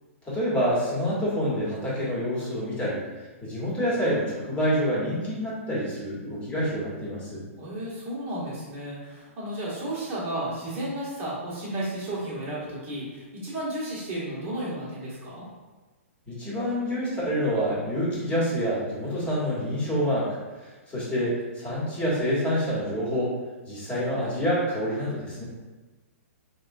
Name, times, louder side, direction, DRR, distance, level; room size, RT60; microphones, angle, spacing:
voice 1, 0.2-3.0 3.4-7.4 16.3-23.3 23.6-25.4, equal, 15° left, -8 dB, 1.3 m, -27 dB
voice 2, 7.6-15.4, right 1 dB, 30° right, -7 dB, 1.2 m, -33 dB
3.5 x 2.3 x 2.6 m, 1.2 s
hypercardioid pair, 135°, 8 cm